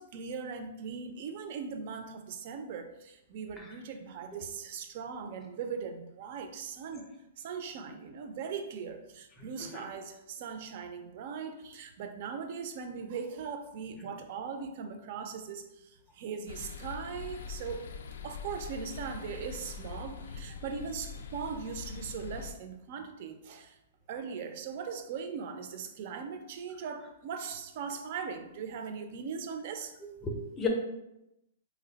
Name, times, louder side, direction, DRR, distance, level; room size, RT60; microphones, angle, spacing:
voice 1, 0.0-7.0 7.4-17.8 18.2-23.8 24.1-29.9, right 6 dB, 50° right, 7 dB, 0.4 m, -39 dB
sound 1, 16.5-22.5, left 6 dB, 80° left, 0.3 m, -43 dB
voice 2, 30.2-30.7, left 4 dB, 15° left, 1 dB, 0.5 m, -35 dB
2.8 x 2.1 x 3.8 m, 0.89 s
hypercardioid pair, 155°, 0 cm